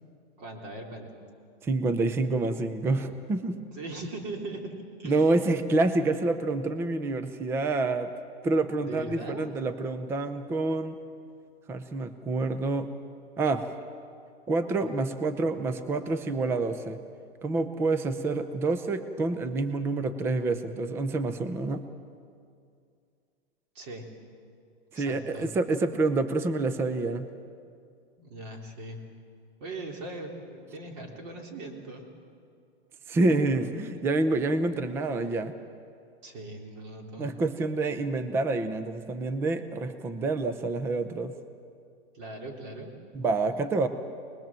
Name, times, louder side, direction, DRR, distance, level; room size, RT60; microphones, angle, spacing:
voice 1, 0.4-1.1 3.7-4.7 5.0-5.4 8.8-9.5 23.7-24.1 24.9-25.5 28.2-29.0 29.6-32.0 36.2-37.3 42.1-42.9, right 2 dB, 40° right, 2 dB, 3.7 m, -40 dB
voice 2, 1.6-3.7 5.0-8.1 8.4-11.0 11.7-12.9 13.4-13.6 14.5-17.0 17.4-21.8 24.9-27.3 33.1-35.5 37.2-41.4 43.1-43.9, right 3 dB, 10° right, 10 dB, 0.5 m, -27 dB
24.0 x 20.5 x 7.5 m, 2.3 s
supercardioid pair, 155°, 32 cm